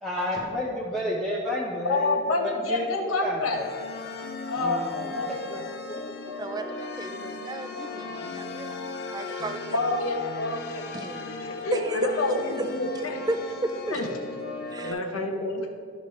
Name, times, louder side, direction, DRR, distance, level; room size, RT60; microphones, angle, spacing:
voice 1, 0.0-2.1 2.4-2.9 3.2-3.7 4.6-5.2, left 1 dB, ahead, -6 dB, 0.8 m, -30 dB
voice 2, 1.8-3.6 4.5-5.6 9.7-10.8 11.3-13.2 13.9-14.1 14.8-15.7, left 2 dB, 90° left, 2 dB, 1.0 m, -28 dB
sound 1, 3.5-14.9, left 4 dB, 50° left, 0.6 m, -37 dB
voice 3, 6.4-9.8 10.9-12.1 12.6-12.7 13.3-14.1 14.7-15.0, right 2 dB, 20° right, 8 dB, 0.4 m, -33 dB
12.0 x 5.1 x 3.2 m, 2.1 s
head